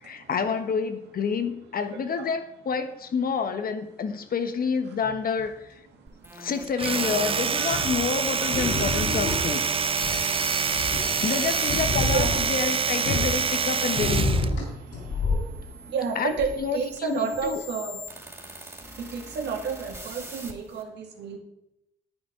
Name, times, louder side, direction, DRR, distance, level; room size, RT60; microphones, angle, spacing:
voice 1, 0.0-5.8 6.4-9.6 11.2-14.3 16.1-17.6, left 6 dB, 55° left, 9 dB, 1.3 m, -28 dB
sound 1, 5.0-5.5 7.7-8.1 8.5-10.3 10.7-13.5 13.9-15.6 16.4-16.6 17.3-17.4, left 2 dB, 80° left, 3.8 m, -29 dB
sound 2, 6.1-11.8 12.5-14.0 14.8-20.8, right 1 dB, 15° right, 2.7 m, -40 dB
Domestic sounds home sounds, 6.7-14.5, right 6 dB, 30° right, 0.4 m, -26 dB
voice 2, 12.0-12.6 15.9-18.0 19.0-21.4, right 5 dB, 75° right, 3 dB, 2.2 m, -30 dB
10.0 x 8.7 x 5.1 m, 0.83 s
supercardioid pair, 55°, 18 cm